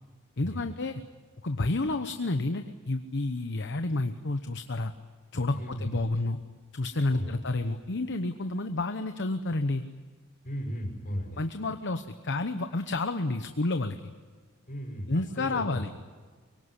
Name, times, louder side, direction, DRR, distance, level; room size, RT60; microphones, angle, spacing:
voice 1, 0.4-1.0 1.4-4.9 5.3-6.4 6.7-9.8 11.4-14.1 15.1-16.0, left 2 dB, 55° left, 8 dB, 1.0 m, -30 dB
voice 2, 5.5-6.0 7.1-7.4 10.4-11.4 14.7-15.9, equal, 40° left, 1 dB, 6.2 m, -36 dB
24.5 x 23.0 x 9.9 m, 1.5 s
head